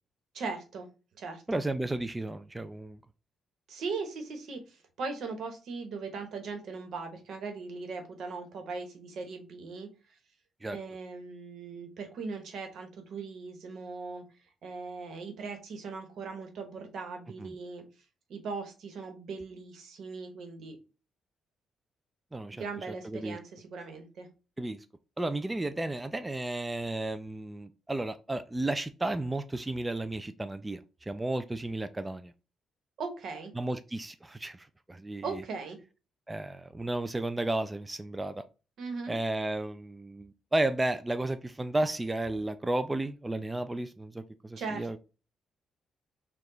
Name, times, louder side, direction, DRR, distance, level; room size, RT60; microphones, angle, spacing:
voice 1, 0.3-0.9 1.2-1.6 3.7-9.9 10.7-14.2 14.6-17.8 18.3-20.8 22.5-24.3 33.0-33.5 35.2-35.8 38.8-39.2 44.6-45.0, right 4 dB, 70° right, 6 dB, 1.1 m, -39 dB
voice 2, 1.5-3.0 10.6-10.8 17.4-17.5 22.3-22.7 23.0-23.4 24.6-24.8 25.2-32.3 33.6-35.4 36.3-38.4 39.1-45.0, right 2 dB, 15° right, 10 dB, 0.3 m, -33 dB
4.7 x 2.3 x 3.8 m, 0.33 s
cardioid pair, 90°, 0 cm